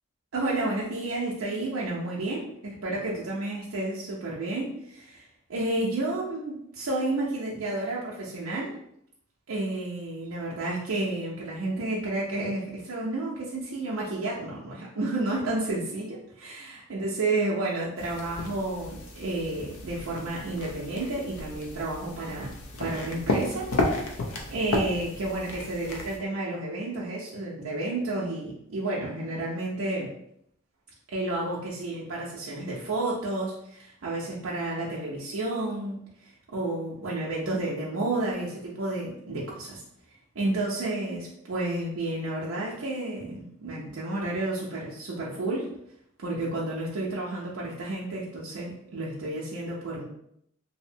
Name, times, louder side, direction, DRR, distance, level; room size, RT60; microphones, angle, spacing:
voice 1, 0.3-8.7 9.5-22.5 22.8-24.1 24.5-30.1 31.1-39.8 40.4-45.7 46.2-50.0, right 2 dB, 75° right, -5 dB, 0.5 m, -31 dB
sound 1, 18.0-26.2, left 2 dB, 80° left, 0.5 m, -33 dB
2.7 x 2.0 x 2.6 m, 0.73 s
head